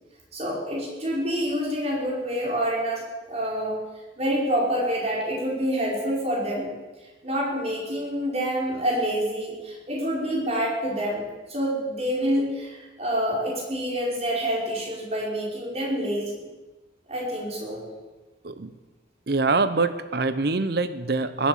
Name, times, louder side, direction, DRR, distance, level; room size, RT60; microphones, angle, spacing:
voice 1, 0.3-3.8 4.2-6.7 7.2-16.4 17.1-17.8, equal, 35° right, -3 dB, 5.1 m, -27 dB
voice 2, 19.3-21.5, right 3 dB, 60° right, 12 dB, 0.8 m, -24 dB
20.5 x 8.5 x 7.4 m, 1.2 s
head